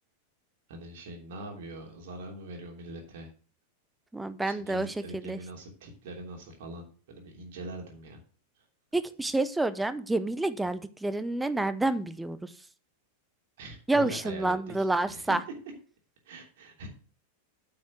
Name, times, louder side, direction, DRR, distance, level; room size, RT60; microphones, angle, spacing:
voice 1, 0.7-3.3 4.4-8.2 10.6-10.7 13.6-15.2 16.2-16.9, right 1 dB, 55° right, 1 dB, 3.1 m, -43 dB
voice 2, 4.1-5.4 8.9-12.5 13.9-15.4, right 2 dB, 5° right, 13 dB, 0.7 m, -29 dB
8.9 x 5.8 x 6.1 m, 0.40 s
figure-of-eight pair, 90°, 0 cm